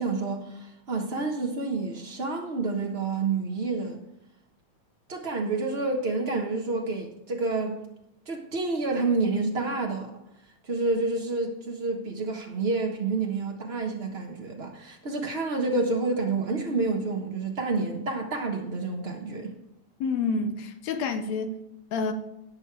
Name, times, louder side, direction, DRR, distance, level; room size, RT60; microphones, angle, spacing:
voice 1, 0.0-4.0 5.1-7.8 8.3-10.2 10.7-19.5, right 3 dB, 85° right, 0.5 m, -29 dB
voice 2, 20.0-21.6 21.9-22.1, left 4 dB, 75° left, 2.1 m, -28 dB
17.0 x 6.6 x 4.7 m
omnidirectional pair, 3.3 m